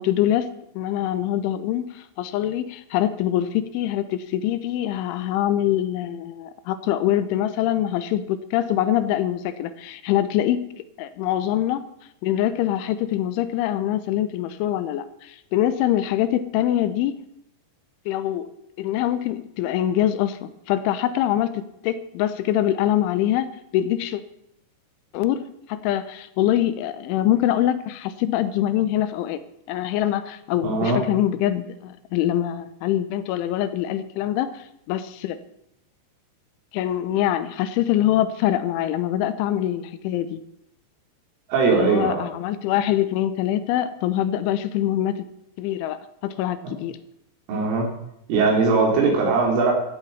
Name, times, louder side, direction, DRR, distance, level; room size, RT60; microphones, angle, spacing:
voice 1, 0.0-10.7 11.0-11.9 12.2-17.2 18.1-18.5 18.8-24.2 25.1-29.4 29.7-35.4 36.7-40.4 41.7-45.3 45.6-47.0 49.0-49.1, left 12 dB, 85° left, 12 dB, 3.2 m, -24 dB
voice 2, 30.6-31.0 41.5-42.2 46.6-46.7 47.5-47.9 48.3-49.7, right 4 dB, 90° right, 0 dB, 6.1 m, -20 dB
15.0 x 8.4 x 8.6 m, 0.78 s
omnidirectional pair, 5.6 m